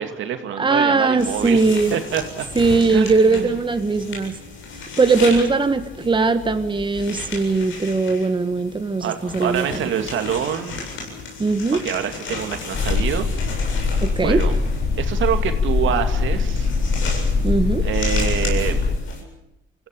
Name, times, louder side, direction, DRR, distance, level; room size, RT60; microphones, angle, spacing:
voice 1, 0.0-1.6 1.9-2.4 2.9-3.5 5.2-5.4 9.0-10.8 11.8-13.3 14.2-14.5 15.0-16.8 17.8-18.8, right 9 dB, 75° right, 7 dB, 2.5 m, -26 dB
voice 2, 0.6-1.9 2.5-4.3 5.0-9.8 11.4-11.8 14.0-14.4 17.4-17.9, right 3 dB, 25° right, 8 dB, 1.6 m, -19 dB
sound 1, 1.2-19.2, left 4 dB, 75° left, 7.8 m, -35 dB
sound 2, 12.7-19.0, left 4 dB, 55° left, 3.5 m, -22 dB
25.5 x 16.0 x 8.6 m, 0.91 s
cardioid pair, 90°, 20 cm